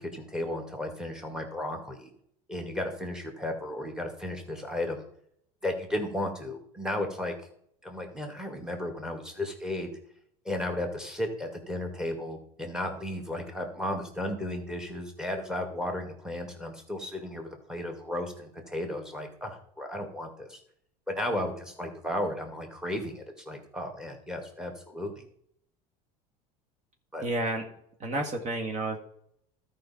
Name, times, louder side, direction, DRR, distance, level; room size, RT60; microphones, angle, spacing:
voice 1, 0.0-2.1 2.5-5.1 5.6-7.3 7.8-9.9 10.5-20.6 21.1-25.3 27.1-27.2, left 1 dB, 5° right, 3 dB, 2.0 m, -34 dB
voice 2, 27.2-27.6 28.0-29.0, right 2 dB, 40° right, 3 dB, 1.7 m, -30 dB
12.5 x 5.2 x 4.3 m, 0.68 s
supercardioid pair, 95°, 18 cm